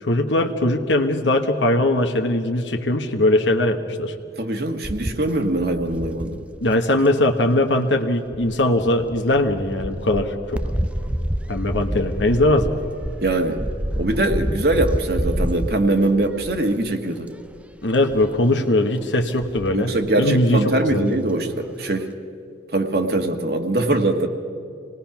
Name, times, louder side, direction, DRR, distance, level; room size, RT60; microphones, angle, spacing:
voice 1, 0.0-4.1 6.6-10.6 11.5-12.7 17.8-19.9 20.2-21.1, left 1 dB, 85° left, 4 dB, 1.2 m, -20 dB
voice 2, 4.4-6.4 13.2-13.6 14.0-17.3 19.7-22.1 22.7-24.3, right 2 dB, 55° right, 4 dB, 1.4 m, -22 dB
sound 1, 4.8-7.1 8.3-16.9 17.3-17.6 17.9-18.4 19.2-20.1 20.6-20.7 20.9-21.0, equal, 5° right, 0.5 m, -28 dB
26.5 x 19.0 x 5.9 m, 2.6 s
head